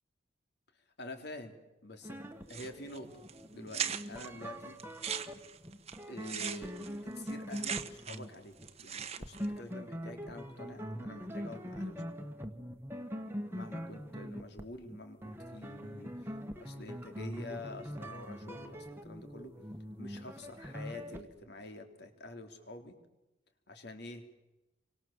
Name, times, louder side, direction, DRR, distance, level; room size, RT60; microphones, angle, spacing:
voice 1, 1.0-1.6 1.8-2.2 2.5-3.2 3.5-3.8 4.1-4.8 6.1-6.7 7.0-12.0 13.5-19.5 20.0-23.0 23.7-24.2, left 2 dB, 55° left, 6 dB, 3.3 m, -47 dB
sound 1, 2.0-21.2, equal, 10° right, 1.6 m, -43 dB
sound 2, 2.5-3.0 3.3-3.4 3.7-4.3 4.8-8.3 8.6-9.4, right 8 dB, 35° right, 1.2 m, -39 dB
29.0 x 24.5 x 7.3 m, 0.94 s
head